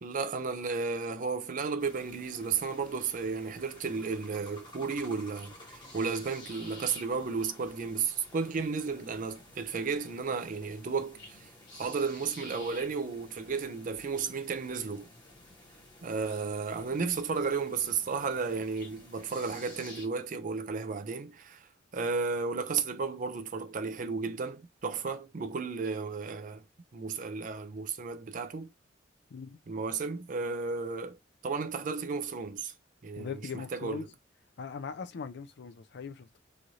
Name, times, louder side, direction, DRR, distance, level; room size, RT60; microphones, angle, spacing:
voice 1, 0.0-11.5 11.8-15.1 16.0-26.6 26.9-28.7 29.7-31.2 31.4-32.7 33.0-33.3 33.7-34.0, right 5 dB, 45° right, 0.4 m, -33 dB
sound 1, 1.8-20.1, left 1 dB, 25° left, 1.0 m, -52 dB
voice 2, 33.2-34.1 34.6-36.4, left 5 dB, 60° left, 0.4 m, -40 dB
3.1 x 2.5 x 2.7 m
head